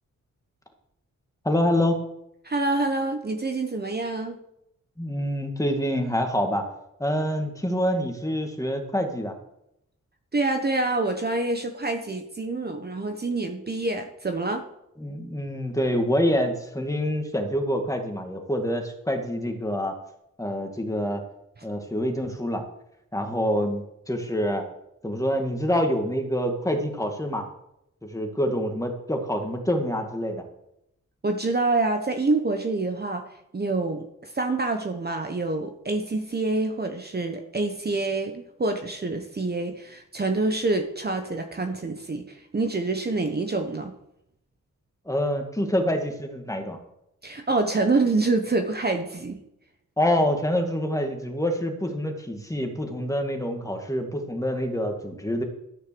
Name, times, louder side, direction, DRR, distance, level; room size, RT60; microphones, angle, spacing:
voice 1, 1.4-2.0 5.0-6.6 7.0-9.3 15.0-19.9 20.4-21.2 21.6-22.6 23.1-24.6 25.0-27.4 28.1-30.4 45.1-46.8 50.0-55.4, equal, 10° left, 4 dB, 2.0 m, -26 dB
voice 2, 2.4-4.4 10.3-14.6 31.2-33.3 33.5-43.9 47.2-49.4, right 3 dB, 30° right, 5 dB, 1.1 m, -26 dB
13.0 x 6.6 x 6.9 m, 0.80 s
wide cardioid pair, 95°, 31 cm